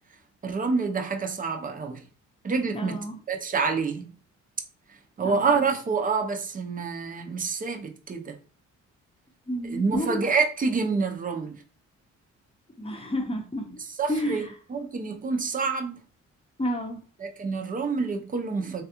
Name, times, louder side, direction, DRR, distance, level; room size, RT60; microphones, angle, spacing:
voice 1, 0.4-2.0 2.4-3.0 3.3-4.1 5.2-8.3 9.7-11.6 14.0-14.4 14.7-16.0 17.2-18.8, right 4 dB, 30° right, 0.6 m, -27 dB
voice 2, 2.7-3.2 5.2-5.6 9.5-10.2 12.8-13.8 14.1-14.5 16.6-17.0, equal, 20° left, 0.7 m, -30 dB
3.2 x 2.3 x 2.9 m
cardioid pair, 90°, 30 cm